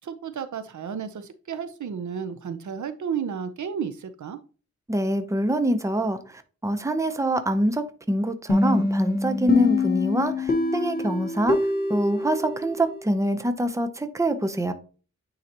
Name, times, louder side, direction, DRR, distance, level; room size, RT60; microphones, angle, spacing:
voice 1, 0.0-4.4, right 7 dB, 80° right, 0.8 m, -32 dB
voice 2, 4.9-11.6 11.9-14.7, right 1 dB, 10° right, 0.7 m, -25 dB
sound 1, 8.5-13.2, left 2 dB, 30° left, 1.3 m, -25 dB
9.5 x 4.0 x 2.9 m
wide cardioid pair, 120°, 29 cm